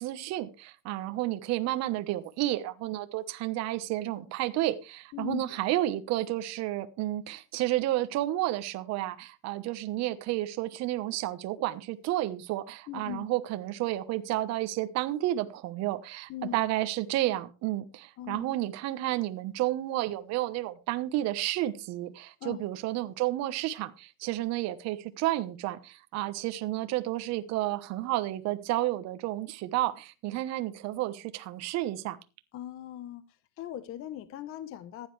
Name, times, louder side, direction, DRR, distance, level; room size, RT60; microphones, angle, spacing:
voice 1, 0.0-32.2, right 15 dB, 40° right, 1.2 m, -31 dB
voice 2, 5.1-5.6 12.9-13.3 16.3-16.6 18.2-18.5 22.4-22.6 32.5-33.2 33.6-35.1, left 11 dB, 35° left, 0.9 m, -39 dB
15.0 x 10.5 x 3.3 m
supercardioid pair, 135°, 39 cm